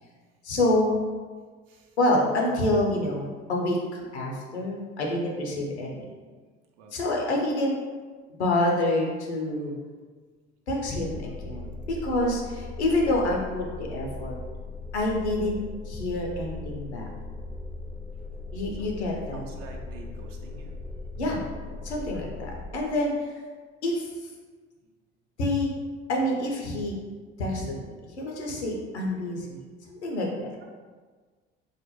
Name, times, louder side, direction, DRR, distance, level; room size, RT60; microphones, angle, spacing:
voice 1, 0.4-1.0 2.0-6.1 6.9-7.7 8.3-9.7 10.7-14.4 14.9-15.6 15.8-17.1 18.5-19.4 21.2-21.4 21.8-23.4 23.8-24.3 25.4-25.7 26.1-26.9 27.4-29.6 29.9-30.5, left 1 dB, 85° left, -1 dB, 0.5 m, -27 dB
sound 1, 10.9-22.6, left 3 dB, 5° right, 0.3 m, -38 dB
voice 2, 19.3-20.7, right 3 dB, 60° right, 1 dB, 0.5 m, -46 dB
2.4 x 2.1 x 2.9 m, 1.5 s
figure-of-eight pair, 55°, 33 cm